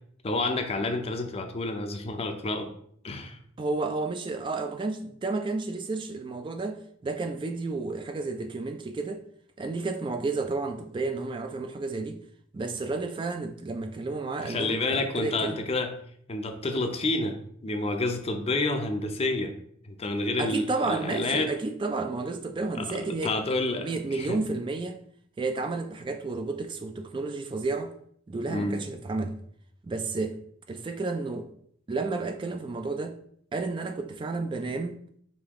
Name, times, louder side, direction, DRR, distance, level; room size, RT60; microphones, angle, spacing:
voice 1, 0.2-2.7 3.0-3.4 14.4-15.9 16.3-19.5 19.8-21.5 22.8-24.4 28.5-28.8, left 2 dB, 30° left, 0.5 m, -29 dB
voice 2, 3.6-9.2 9.6-12.2 12.5-15.6 20.4-23.4 23.8-25.0 25.4-27.9 28.3-29.4 29.8-30.4 30.7-31.5 31.9-33.2 33.5-35.0, right 3 dB, 25° right, 0.3 m, -31 dB
5.2 x 2.7 x 3.5 m
head